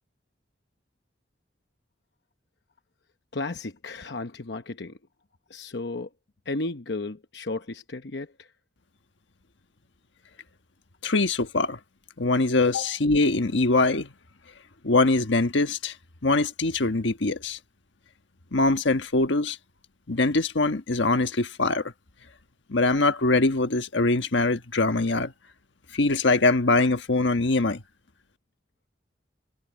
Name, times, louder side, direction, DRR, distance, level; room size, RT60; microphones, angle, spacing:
voice 1, 3.3-5.0 5.5-6.1 6.5-8.3 12.8-12.9, left 2 dB, 70° left, 0.9 m, -33 dB
voice 2, 11.0-11.8 12.2-14.1 14.8-15.9 16.2-17.6 18.5-19.6 20.1-21.9 22.7-25.3 25.9-27.8, left 3 dB, 90° left, 1.4 m, -23 dB
head